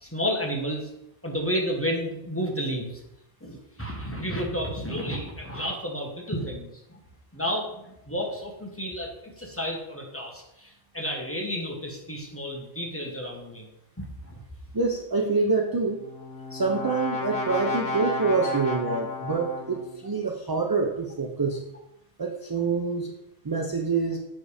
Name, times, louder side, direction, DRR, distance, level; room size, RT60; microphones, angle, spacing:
voice 1, 0.0-0.8 1.2-2.9 3.4-6.7 7.3-7.7 8.1-9.1 9.4-10.7 10.9-13.7 14.0-14.1, equal, 15° left, 0 dB, 1.0 m, -31 dB
voice 2, 14.7-16.0 16.5-21.6 22.2-23.1 23.4-24.2, right 4 dB, 30° right, 1 dB, 0.4 m, -26 dB
Brass instrument, 15.8-20.0, left 2 dB, 80° left, 1.2 m, -32 dB
7.5 x 3.4 x 4.8 m, 0.84 s
omnidirectional pair, 1.0 m